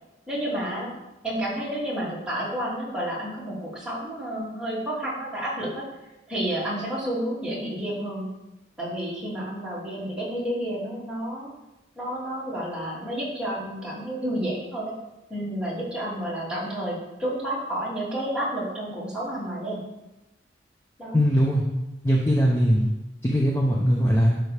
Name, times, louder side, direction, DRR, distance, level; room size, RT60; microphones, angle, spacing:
voice 1, 0.3-0.9 1.2-5.8 6.3-8.3 8.8-11.5 12.0-14.9 15.3-19.8 21.0-21.2, right 1 dB, 5° right, -8 dB, 2.7 m, -30 dB
voice 2, 21.1-21.6 22.0-22.9 23.2-24.4, equal, 15° left, -3 dB, 0.9 m, -20 dB
11.0 x 6.2 x 3.5 m, 0.97 s
head